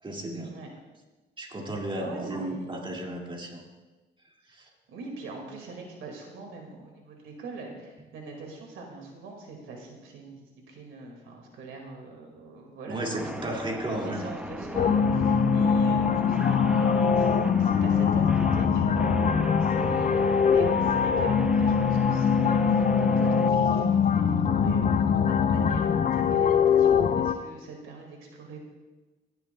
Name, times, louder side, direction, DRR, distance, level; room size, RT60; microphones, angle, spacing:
voice 1, 0.0-0.5 1.4-3.6 4.5-4.7 12.9-14.3 19.6-19.9, right 1 dB, 25° right, -1 dB, 2.2 m, -34 dB
voice 2, 1.9-2.7 4.9-13.6 14.0-28.6, right 3 dB, 85° right, 1 dB, 2.1 m, -42 dB
sound 1, 13.2-23.5, right 1 dB, 5° right, 0.5 m, -38 dB
sound 2, 14.4-25.7, right 7 dB, 60° right, 0.8 m, -44 dB
sound 3, 14.7-27.3, left 6 dB, 40° left, 0.6 m, -23 dB
16.5 x 10.5 x 2.3 m, 1.2 s
cardioid pair, 90°, 20 cm